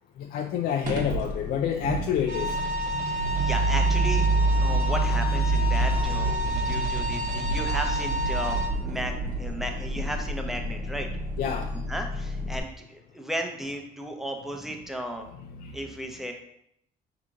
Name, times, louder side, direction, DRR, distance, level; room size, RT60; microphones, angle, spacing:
voice 1, 0.2-2.5 11.4-11.7 15.4-15.8, left 9 dB, 65° left, 4 dB, 0.4 m, -28 dB
sound 1, 0.8-12.6, right 2 dB, 55° right, 0.9 m, -27 dB
sound 2, 2.3-8.7, left 1 dB, 80° right, 0.7 m, -31 dB
voice 2, 3.0-4.3 4.5-11.1 11.9-15.3 15.7-16.3, equal, ahead, 3 dB, 0.6 m, -35 dB
4.9 x 2.9 x 3.7 m, 0.74 s
cardioid pair, 110°, 17 cm